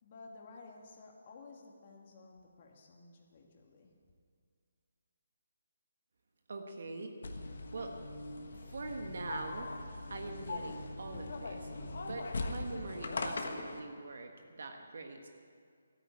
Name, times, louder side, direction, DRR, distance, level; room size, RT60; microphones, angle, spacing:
voice 1, 0.0-3.9, left 3 dB, 40° left, 0 dB, 2.2 m, -54 dB
voice 2, 6.5-7.1 7.7-7.9 8.7-9.7 10.1-11.7 12.0-15.3, right 3 dB, 65° right, 4 dB, 1.5 m, -43 dB
sound 1, 7.2-13.8, left 3 dB, 65° left, 1.5 m, -40 dB
13.0 x 9.9 x 8.6 m, 2.1 s
hypercardioid pair, 155°, 0 cm